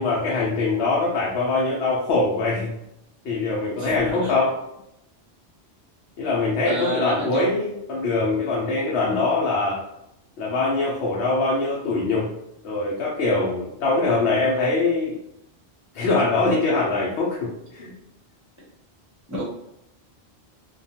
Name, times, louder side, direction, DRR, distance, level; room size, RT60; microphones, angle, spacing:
voice 1, 0.0-2.7 3.2-4.6 6.2-9.8 10.4-12.3 12.6-15.2 15.9-17.9, left 3 dB, 80° left, -4 dB, 0.8 m, -23 dB
voice 2, 6.6-7.6 8.8-9.3 19.3-19.4, equal, 20° right, -5 dB, 0.7 m, -29 dB
2.3 x 2.2 x 2.7 m, 0.81 s
omnidirectional pair, 1.1 m